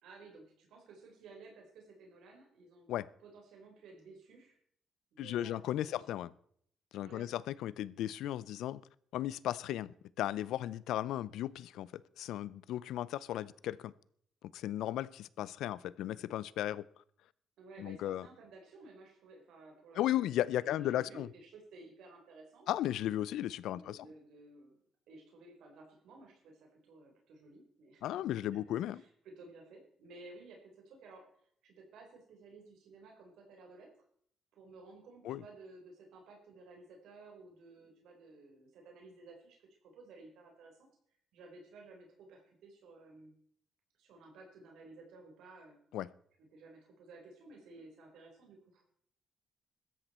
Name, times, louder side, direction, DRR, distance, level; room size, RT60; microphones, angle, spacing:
voice 1, 0.0-2.9 3.2-4.6 5.1-6.2 7.0-7.3 17.6-22.7 23.7-24.8 25.1-28.3 28.9-31.2 31.6-33.9 34.5-39.6 39.8-40.8 41.1-43.3 44.0-45.8 46.4-48.8, right 3 dB, 80° right, 4.3 m, -55 dB
voice 2, 5.2-6.3 6.9-8.8 9.1-13.9 14.5-16.8 17.8-18.3 19.9-21.3 22.7-24.1 28.0-29.0 35.2-35.4 45.9-46.1, left 13 dB, 85° left, 0.6 m, -35 dB
16.0 x 13.5 x 4.4 m
cardioid pair, 90°, 0 cm